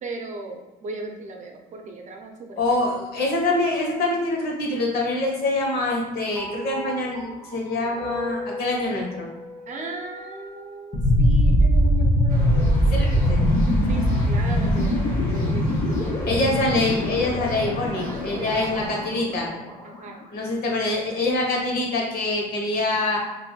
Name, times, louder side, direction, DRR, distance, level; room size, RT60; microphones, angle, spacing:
voice 1, 0.0-2.8 9.7-12.8 13.9-16.1 17.9-18.9 19.8-20.2, right 2 dB, 45° right, 2 dB, 0.6 m, -37 dB
voice 2, 2.6-9.3 12.9-13.4 16.3-19.5 20.3-23.2, left 2 dB, 70° left, -1 dB, 1.0 m, -25 dB
sound 1, 6.4-10.8, left 1 dB, 5° right, 1.1 m, -37 dB
sound 2, 10.9-19.8, equal, 25° left, 1.0 m, -22 dB
sound 3, 12.3-19.0, equal, 50° left, 1.4 m, -37 dB
4.3 x 2.6 x 2.3 m, 1.1 s
cardioid pair, 110°, 17 cm